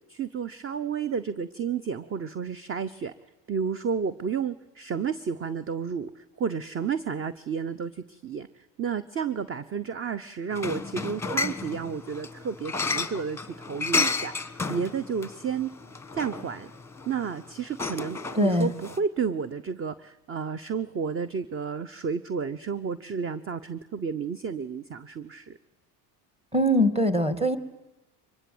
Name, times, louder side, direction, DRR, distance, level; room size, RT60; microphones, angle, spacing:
voice 1, 0.1-3.1 3.5-15.7 16.1-16.7 17.1-25.6, right 6 dB, 25° right, 15 dB, 0.9 m, -31 dB
sound 1, 10.5-19.0, left 4 dB, 5° left, 1.5 m, -32 dB
voice 2, 18.3-18.7 26.5-27.6, equal, 10° right, 12 dB, 2.2 m, -22 dB
24.0 x 21.0 x 8.0 m, 1.0 s
supercardioid pair, 100°, 48 cm